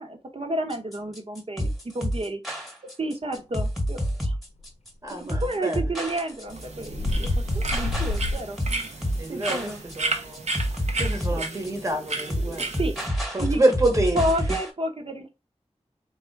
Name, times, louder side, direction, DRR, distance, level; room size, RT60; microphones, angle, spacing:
voice 1, 0.0-2.4 3.0-4.4 5.2-7.3 7.5-8.6 9.3-9.8 11.3-11.4 12.8-13.0 13.4-13.6 14.1-15.3, right 1 dB, 55° right, 1.0 m, -30 dB
sound 1, 0.7-14.7, equal, ahead, 1.2 m, -29 dB
sound 2, 4.6-4.7 6.1-6.3 6.8-8.4, left 2 dB, 75° left, 0.7 m, -28 dB
voice 2, 5.0-5.8 9.2-9.7 10.0-10.4 11.0-12.7 13.3-14.2, right 1 dB, 30° right, 1.1 m, -26 dB
sound 3, 6.5-13.1, right 3 dB, 80° right, 0.8 m, -33 dB
3.6 x 2.4 x 4.5 m
wide cardioid pair, 70°, 11 cm